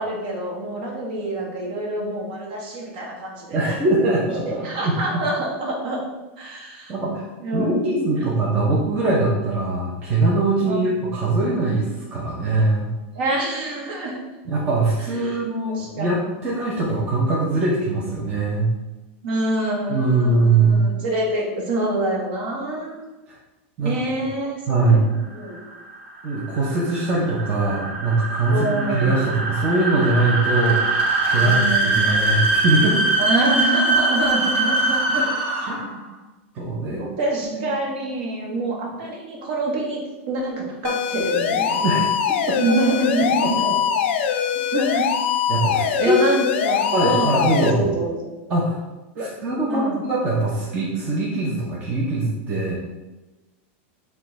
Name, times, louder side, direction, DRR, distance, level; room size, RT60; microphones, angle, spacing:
voice 1, 0.0-3.7 4.6-6.0 6.4-6.9 7.4-7.8 10.6-10.9 13.1-14.2 15.2-15.4 15.7-16.2 19.2-23.0 23.8-25.0 25.3-25.6 28.5-29.1 31.4-32.0 33.2-35.3 36.9-41.8 42.5-43.6 44.7-45.1 45.8-48.3 49.1-49.3 49.7-50.0, right 2 dB, 55° right, -1 dB, 1.0 m, -26 dB
voice 2, 3.5-5.2 6.9-7.3 7.5-12.9 14.5-16.2 16.4-18.7 19.9-20.8 23.8-23.9 24.7-25.2 26.2-30.8 31.3-33.0 35.1-35.3 35.7-36.0 36.5-37.0 37.4-37.8 41.8-42.1 43.4-43.7 45.5-46.2 46.9-48.0 48.5-48.8 49.2-52.8, right 2 dB, 20° right, -5 dB, 0.5 m, -22 dB
sound 1, 25.3-36.0, right 2 dB, 75° right, 1.1 m, -22 dB
sound 2, 40.8-47.7, left 8 dB, 65° left, 0.3 m, -22 dB
6.0 x 2.2 x 3.1 m, 1.1 s
supercardioid pair, 180°, 7 cm